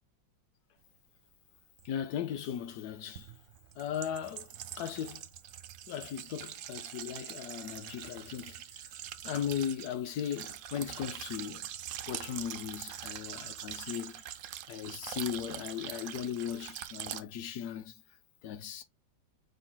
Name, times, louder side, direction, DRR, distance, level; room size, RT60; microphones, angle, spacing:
voice 1, 1.8-3.3 3.8-4.5 4.8-5.2 5.9-8.6 9.2-11.7 12.1-14.2 14.7-17.9 18.4-18.8, left 9 dB, 70° left, 1.0 m, -37 dB
sound 1, 1.8-1.9 3.1-17.2, right 11 dB, 80° right, 0.8 m, -44 dB
5.6 x 2.1 x 4.3 m
omnidirectional pair, 2.0 m